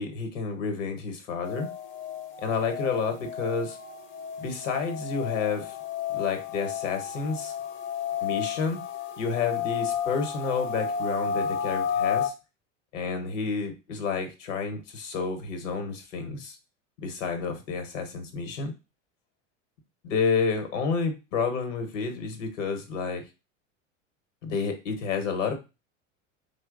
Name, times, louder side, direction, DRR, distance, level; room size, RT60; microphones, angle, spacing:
voice 1, 0.0-1.7 2.4-3.8 4.4-5.7 6.1-7.5 8.2-8.8 9.2-12.3 12.9-16.6 17.0-18.7 20.0-23.2 24.4-25.5, left 5 dB, 80° left, 6 dB, 1.1 m, -30 dB
sound 1, 1.4-12.3, left 8 dB, 35° left, 0.5 m, -32 dB
2.8 x 2.3 x 3.7 m, 0.27 s
hypercardioid pair, 95°, 37 cm